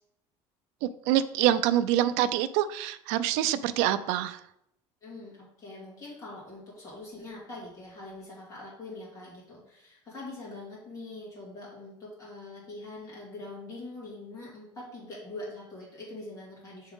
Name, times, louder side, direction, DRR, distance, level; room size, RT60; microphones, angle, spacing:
voice 1, 0.8-4.4, right 12 dB, 90° right, 13 dB, 0.4 m, -26 dB
voice 2, 5.0-16.9, left 2 dB, 30° left, -6 dB, 2.5 m, -43 dB
8.8 x 3.7 x 3.6 m, 0.79 s
cardioid pair, 165°, 12 cm